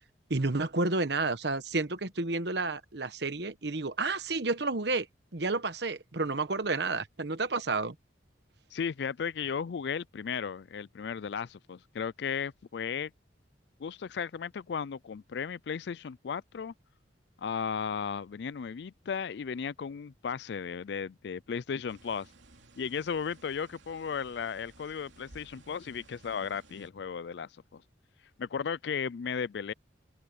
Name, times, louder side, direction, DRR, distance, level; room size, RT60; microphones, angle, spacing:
voice 1, 0.3-5.1 5.3-7.9, right 3 dB, 60° right, 1.2 m, -30 dB
voice 2, 8.7-13.1 13.8-16.7 17.4-22.3 22.8-27.8 28.4-29.7, left 6 dB, 65° left, 0.4 m, -35 dB
sound 1, 21.9-26.9, right 2 dB, 80° right, 2.9 m, -57 dB
open air
head